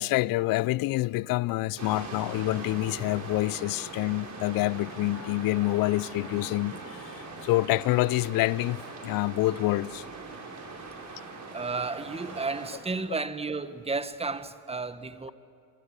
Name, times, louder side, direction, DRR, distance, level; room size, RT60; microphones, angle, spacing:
voice 1, 0.0-10.0, left 18 dB, 45° left, 0.6 m, -27 dB
sound 1, 1.8-12.8, right 3 dB, 35° right, 6.9 m, -41 dB
voice 2, 11.5-15.3, right 4 dB, 10° right, 1.6 m, -32 dB
28.0 x 25.5 x 8.2 m
hypercardioid pair, 70°, 48 cm